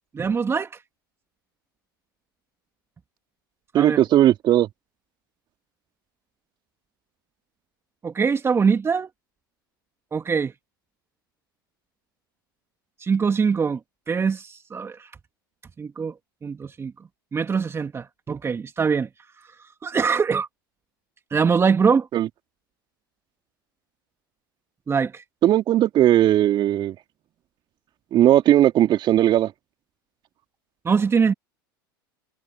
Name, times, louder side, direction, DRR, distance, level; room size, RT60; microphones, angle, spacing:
voice 1, 0.1-0.7 3.7-4.0 8.0-9.1 10.1-10.5 13.0-13.8 14.1-15.1 15.8-16.1 16.4-16.9 17.3-19.1 19.8-20.5 21.3-22.1 24.9-25.2 30.8-31.3, right 5 dB, 20° right, 2.2 m, -22 dB
voice 2, 3.7-4.7 22.1-22.3 25.4-27.0 28.1-29.5, right 12 dB, 40° right, 2.8 m, -18 dB
hypercardioid pair, 85°, 12 cm